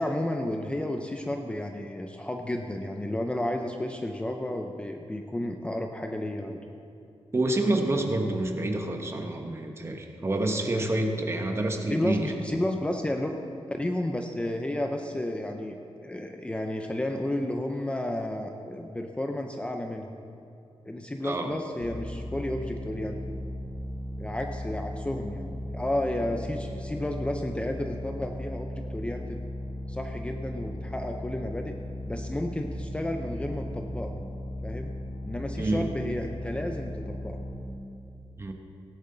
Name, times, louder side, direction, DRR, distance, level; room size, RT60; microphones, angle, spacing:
voice 1, 0.0-6.6 11.9-13.3 13.7-20.1 20.9-23.2 24.2-29.4 29.9-31.8 32.1-34.3 34.6-34.9 35.3-37.4, left 1 dB, 10° left, 4 dB, 0.5 m, -32 dB
voice 2, 7.3-12.3 21.2-21.5 35.6-35.9 38.4-38.5, right 2 dB, 25° right, 4 dB, 1.1 m, -28 dB
sound 1, 21.8-37.7, left 1 dB, 80° left, 1.6 m, -37 dB
17.0 x 11.0 x 3.9 m, 2.7 s
wide cardioid pair, 150°, 10 cm